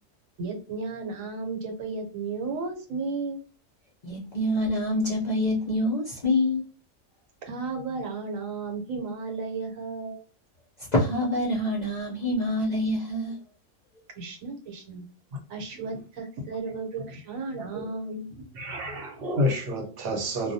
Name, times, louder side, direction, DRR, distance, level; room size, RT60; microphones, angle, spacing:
voice 1, 0.4-3.4 7.5-10.2 14.2-15.0 15.5-18.3, right 4 dB, 85° right, 1.1 m, -34 dB
voice 2, 4.0-6.6 10.9-13.4, left 1 dB, 50° left, 0.5 m, -26 dB
voice 3, 18.5-20.5, left 1 dB, 55° right, 0.8 m, -29 dB
2.2 x 2.2 x 2.6 m
omnidirectional pair, 1.4 m